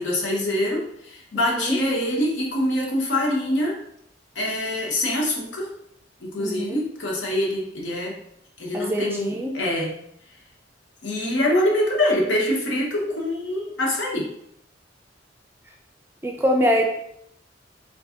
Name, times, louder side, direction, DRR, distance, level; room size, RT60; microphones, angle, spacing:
voice 1, 0.0-3.8 4.3-5.7 6.2-8.1 8.6-9.9 11.0-14.3, left 1 dB, 80° left, -2 dB, 0.9 m, -24 dB
voice 2, 1.3-1.8 6.4-6.8 8.7-9.6 16.2-16.8, equal, 10° right, 1 dB, 0.4 m, -24 dB
3.8 x 2.6 x 2.4 m, 0.73 s
head